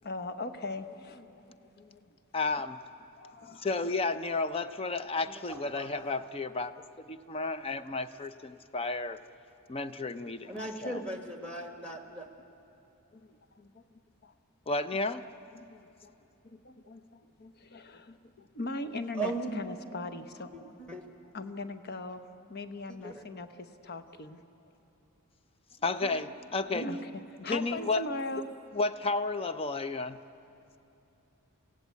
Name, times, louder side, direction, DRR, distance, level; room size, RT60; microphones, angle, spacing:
voice 1, 0.0-2.1 3.2-3.7 13.1-13.8 14.2-14.3 15.5-16.1 16.4-20.5 21.3-22.2 22.5-24.4 26.8-27.1 27.4-28.5, left 2 dB, 50° left, 10 dB, 0.9 m, -40 dB
voice 2, 2.3-2.8 3.6-6.7 7.1-9.2 9.7-11.0 14.7-15.3 25.8-26.9 27.5-28.0 28.7-30.2, left 3 dB, 25° left, 12 dB, 0.6 m, -32 dB
voice 3, 5.5-6.1 10.5-12.3 19.1-19.6 20.5-21.0 23.0-23.2 26.0-26.2 26.7-26.9, right 3 dB, 5° left, 4 dB, 1.6 m, -38 dB
28.0 x 16.0 x 8.2 m, 2.9 s
head